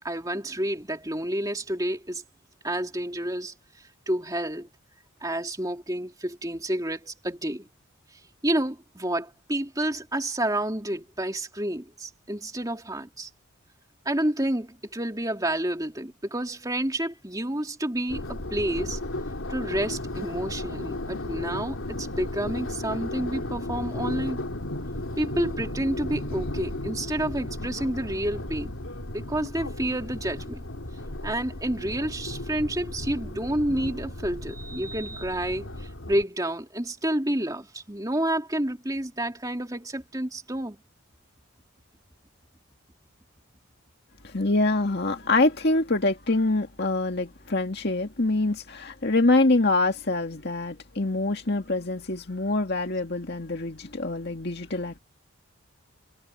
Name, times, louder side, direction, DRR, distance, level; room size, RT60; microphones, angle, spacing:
voice 1, 0.0-2.2 2.6-3.5 4.1-4.7 5.2-7.7 8.4-13.3 14.0-19.0 19.5-24.4 25.2-28.7 29.1-30.6 31.2-40.8, right 1 dB, 15° right, 2.8 m, -29 dB
sound 1, 18.1-36.2, left 1 dB, 70° left, 2.9 m, -34 dB
voice 2, 44.2-55.0, left 2 dB, 50° left, 2.1 m, -25 dB
head